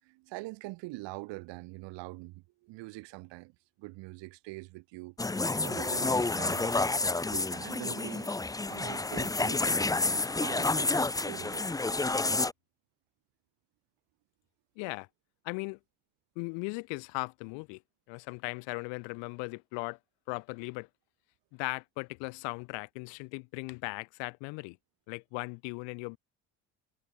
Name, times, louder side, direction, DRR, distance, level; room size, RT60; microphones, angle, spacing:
voice 1, 0.0-3.5 3.8-6.8 7.3-8.3 8.7-9.8 10.1-11.8, right 22 dB, 70° right, 6.4 m, -44 dB
sound 1, 5.2-12.5, left 3 dB, 10° left, 0.7 m, -29 dB
voice 2, 14.8-15.1 15.4-15.8 16.4-17.8 18.1-20.0 20.3-20.9 21.5-24.8 25.1-26.2, left 34 dB, 70° left, 2.2 m, -38 dB
hypercardioid pair, 60°, 45 cm